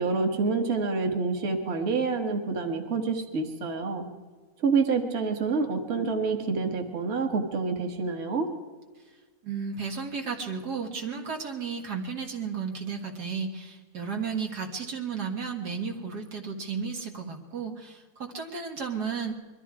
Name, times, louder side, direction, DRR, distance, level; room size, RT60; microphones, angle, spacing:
voice 1, 0.0-4.1 4.6-8.5, right 4 dB, 45° right, 4 dB, 1.7 m, -27 dB
voice 2, 9.4-19.3, right 5 dB, 85° right, 2 dB, 2.3 m, -33 dB
22.0 x 13.0 x 4.8 m, 1.4 s
omnidirectional pair, 1.7 m